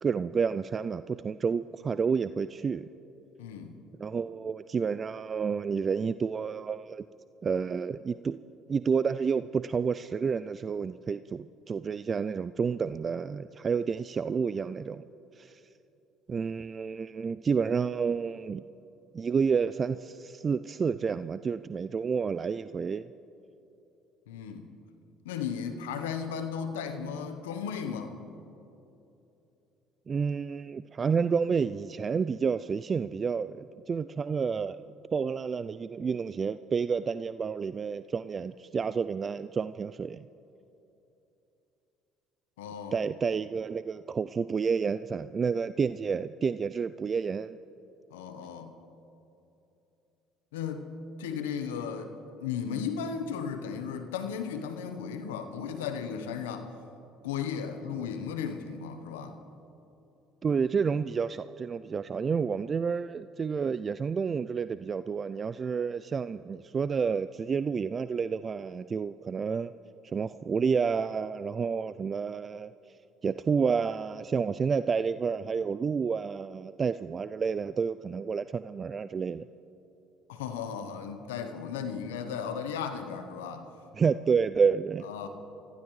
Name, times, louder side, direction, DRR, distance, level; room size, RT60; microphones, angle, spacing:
voice 1, 0.0-2.9 4.0-7.1 7.4-8.4 8.7-15.0 15.4-15.6 16.3-18.6 19.1-23.1 30.1-40.3 42.9-47.6 60.4-69.7 70.0-72.7 73.2-79.4 84.0-85.1, right 6 dB, 40° right, 14 dB, 0.3 m, -30 dB
voice 2, 3.4-3.8 24.3-24.7 25.2-28.1 42.6-43.0 48.1-48.7 50.5-50.9 51.2-52.1 52.4-56.7 57.2-59.4 80.3-83.7 85.0-85.3, left 7 dB, 90° left, 8 dB, 1.0 m, -35 dB
24.0 x 15.0 x 3.2 m, 2.9 s
hypercardioid pair, 65°, 0 cm